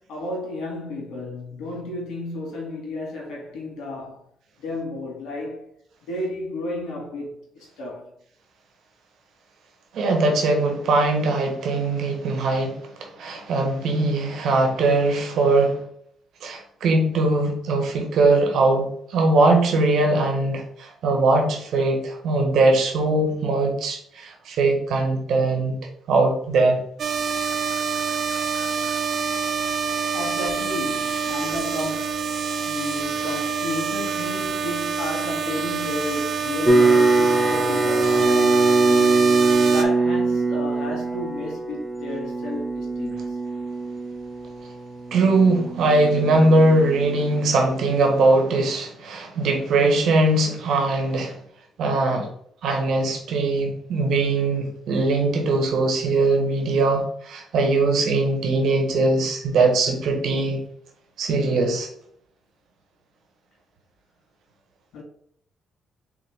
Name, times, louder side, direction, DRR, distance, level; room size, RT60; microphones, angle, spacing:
voice 1, 0.0-4.3 4.6-5.7 6.0-8.1 30.1-32.2 32.6-39.3 39.7-43.4 64.9-65.0, left 2 dB, 80° left, 1.9 m, -32 dB
voice 2, 9.9-15.8 16.4-25.8 26.1-26.8 45.1-51.4 51.8-52.3 52.6-60.6 61.2-61.9, right 2 dB, 75° right, 1.3 m, -21 dB
sound 1, 27.0-39.8, right 6 dB, 55° right, 0.6 m, -26 dB
sound 2, 36.7-47.7, right 3 dB, 10° right, 0.7 m, -22 dB
3.8 x 3.8 x 3.6 m
cardioid pair, 90°, 0 cm